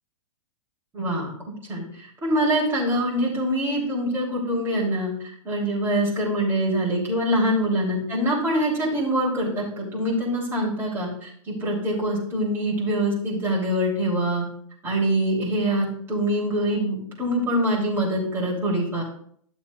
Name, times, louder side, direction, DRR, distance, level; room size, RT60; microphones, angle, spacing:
voice 1, 0.9-1.3 1.7-5.1 5.4-14.4 14.8-19.0, right 1 dB, 15° right, -5 dB, 3.2 m, -24 dB
12.0 x 7.0 x 2.4 m, 0.62 s
hypercardioid pair, 150°, 17 cm